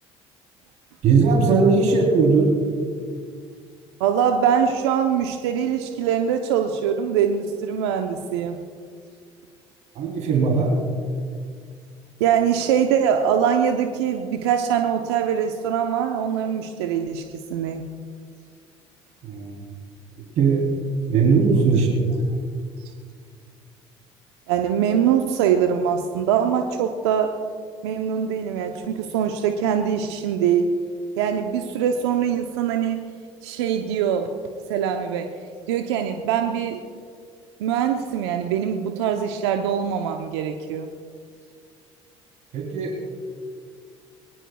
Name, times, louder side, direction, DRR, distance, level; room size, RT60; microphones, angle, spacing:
voice 1, 1.0-2.5 9.9-10.7 19.2-19.6 20.4-20.6 21.1-22.0 42.5-43.0, right 4 dB, 60° right, -1 dB, 3.4 m, -19 dB
voice 2, 4.0-8.6 12.2-17.8 21.6-21.8 24.5-27.3 27.8-30.7 31.2-33.0 33.4-34.3 34.7-35.3 35.7-36.8 37.6-40.9, right 8 dB, 80° right, 5 dB, 0.8 m, -23 dB
22.5 x 19.0 x 2.3 m, 2.1 s
hypercardioid pair, 60°, 14 cm